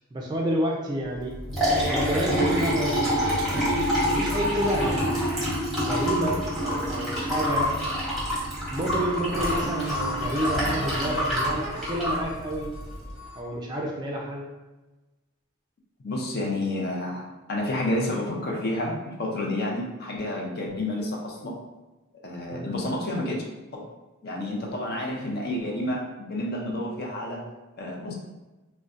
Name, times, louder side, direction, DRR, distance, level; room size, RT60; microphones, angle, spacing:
voice 1, 0.1-1.3 1.8-3.1 4.1-5.2 5.8-7.7 8.7-12.7 13.4-14.5 22.5-22.8, right 1 dB, 20° right, -2 dB, 0.4 m, -29 dB
Liquid, 1.2-13.1, equal, ahead, 1.0 m, -27 dB
sound 1, 6.6-8.1 8.7-8.8 9.3-13.5, equal, 80° left, 1.0 m, -36 dB
voice 2, 16.0-21.6 22.2-23.4 23.7-23.8 24.2-27.4 27.8-28.1, left 1 dB, 50° left, -1 dB, 0.5 m, -30 dB
3.9 x 2.1 x 2.4 m, 1.1 s
head